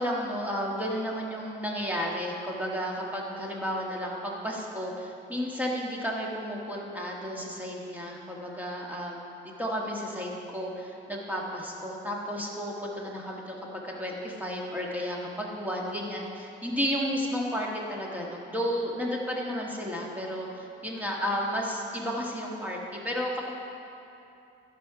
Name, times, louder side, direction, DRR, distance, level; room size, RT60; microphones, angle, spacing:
voice 1, 0.0-13.6 13.8-23.5, equal, 10° right, -3 dB, 1.6 m, -32 dB
15.5 x 5.3 x 4.9 m, 2.7 s
cardioid pair, 90°, 20 cm